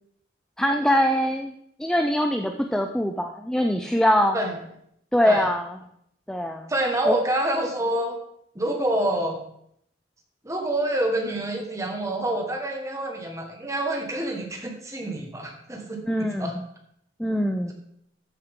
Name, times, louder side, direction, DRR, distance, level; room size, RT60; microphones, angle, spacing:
voice 1, 0.6-1.5 1.8-4.4 5.1-5.7 6.3-6.7 7.1-7.2 16.0-16.6 17.2-17.7, equal, 5° left, 4 dB, 0.4 m, -23 dB
voice 2, 6.7-8.1 8.5-9.4 10.4-16.5, right 1 dB, 15° right, 2 dB, 1.6 m, -27 dB
13.5 x 7.1 x 3.7 m, 0.72 s
head